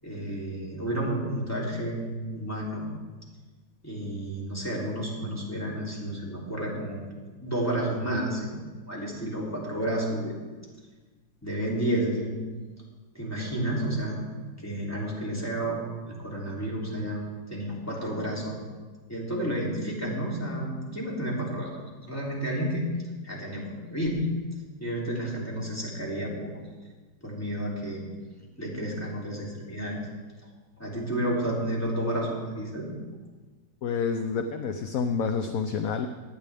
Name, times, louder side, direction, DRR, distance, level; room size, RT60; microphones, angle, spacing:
voice 1, 0.0-2.9 3.8-7.0 7.4-10.4 11.4-12.3 13.1-14.2 14.6-18.5 19.1-21.8 22.1-22.8 23.2-24.2 24.8-26.5 27.2-28.1 28.6-30.0 30.8-32.9, right 1 dB, 10° left, -5 dB, 3.0 m, -31 dB
voice 2, 33.8-36.1, left 5 dB, 65° left, 7 dB, 0.9 m, -28 dB
18.5 x 10.5 x 3.5 m, 1.3 s
omnidirectional pair, 2.0 m